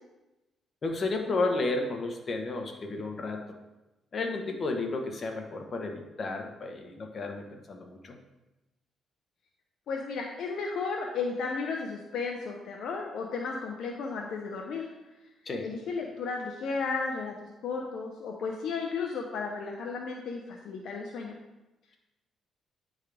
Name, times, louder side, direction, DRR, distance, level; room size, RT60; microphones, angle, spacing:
voice 1, 0.8-3.5 4.1-8.2 15.4-15.7, left 3 dB, 45° left, 3 dB, 1.0 m, -32 dB
voice 2, 9.9-14.9 15.6-17.3 17.6-21.3, left 4 dB, 75° left, 0 dB, 0.7 m, -34 dB
9.6 x 3.7 x 3.4 m, 1.0 s
cardioid pair, 90°, 0 cm